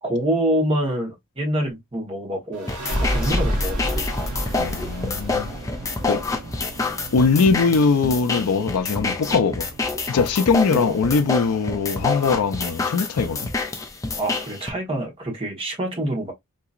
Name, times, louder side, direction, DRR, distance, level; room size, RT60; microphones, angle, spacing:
voice 1, 0.0-2.7 3.0-4.1 10.7-10.9 14.2-16.3, right 1 dB, 25° right, 1.2 m, -26 dB
sound 1, 2.5-13.8, equal, 90° right, 1.6 m, -32 dB
sound 2, 2.7-14.7, left 3 dB, 15° left, 0.5 m, -28 dB
voice 2, 4.6-5.5 6.1-6.2 7.1-9.7 10.1-13.5, left 4 dB, 80° left, 0.5 m, -21 dB
3.9 x 2.8 x 2.4 m
head